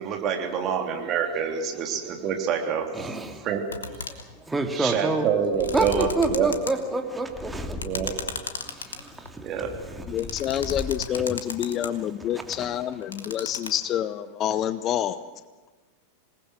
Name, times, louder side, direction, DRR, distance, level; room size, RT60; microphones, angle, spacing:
voice 1, 0.0-2.8 3.4-3.6 4.7-6.5 7.8-8.1 9.4-9.7, right 7 dB, 35° right, 3 dB, 3.3 m, -26 dB
voice 2, 2.9-3.4 4.1-5.3 5.7-8.1 8.6-9.5 9.8-10.6 11.1-11.4 11.8-11.9 12.2-12.8 13.3-13.4, right 2 dB, 10° right, 4 dB, 2.2 m, -30 dB
sound 1, 3.7-4.3 5.4-6.7 7.8-9.4 10.2-11.9 12.9-13.7, left 5 dB, 70° left, 1.7 m, -35 dB
Purr, 5.5-6.6 7.3-8.4 9.1-11.2, left 3 dB, 15° left, 2.6 m, -38 dB
voice 3, 10.1-15.2, left 10 dB, 30° left, 15 dB, 0.7 m, -27 dB
27.0 x 19.0 x 6.4 m, 1.3 s
figure-of-eight pair, 90°, 0 cm